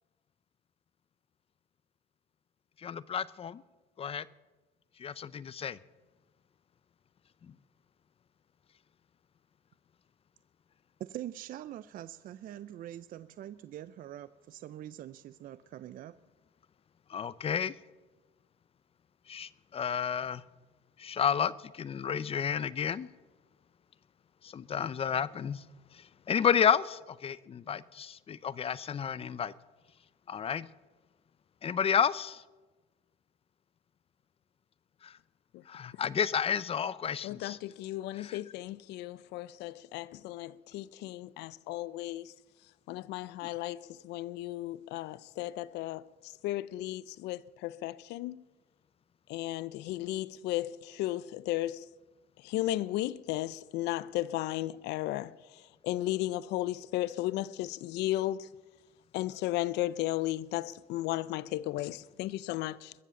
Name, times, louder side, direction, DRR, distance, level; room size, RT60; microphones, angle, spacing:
voice 1, 2.8-3.6 4.0-4.3 5.0-5.8 7.4-7.5 17.1-17.7 19.3-20.4 21.0-23.1 24.4-25.6 25.9-29.5 30.3-30.7 31.6-32.4 35.0-35.2 35.7-37.6 38.2-38.4 43.4-43.5, left 7 dB, 35° left, 0.6 m, -31 dB
voice 2, 11.0-16.1, right 12 dB, 55° right, 0.4 m, -44 dB
voice 3, 37.2-42.3 42.9-48.4 49.3-51.9 52.4-58.5 59.1-62.9, left 15 dB, 85° left, 0.5 m, -35 dB
21.5 x 7.5 x 7.0 m
cardioid pair, 110°, 17 cm